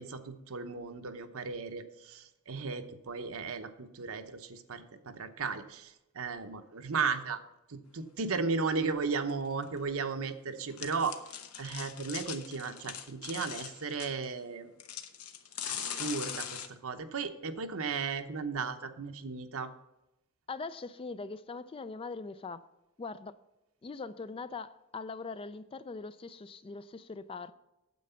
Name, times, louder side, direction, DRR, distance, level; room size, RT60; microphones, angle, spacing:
voice 1, 0.0-7.4 7.7-11.1 11.6-14.7 15.7-19.7, right 4 dB, 70° right, 0.9 m, -35 dB
sound 1, 9.3-9.4 9.6-9.7 10.7-14.3 14.8-16.7, left 9 dB, 85° left, 0.9 m, -41 dB
voice 2, 20.5-22.7 23.0-23.4 23.8-27.5, left 4 dB, 25° left, 0.3 m, -41 dB
9.3 x 7.6 x 5.7 m
head